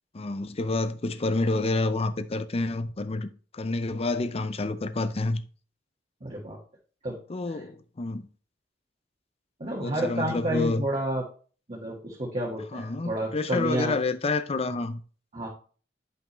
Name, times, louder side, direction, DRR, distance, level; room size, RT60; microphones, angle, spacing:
voice 1, 0.1-5.4 7.3-8.2 9.8-10.8 12.7-15.0, left 2 dB, 30° left, 0.5 m, -28 dB
voice 2, 6.2-6.6 7.0-7.2 7.5-7.6 9.6-11.2 11.7-13.9 15.3-15.5, right 1 dB, 35° right, 1.6 m, -30 dB
9.2 x 5.6 x 3.1 m
head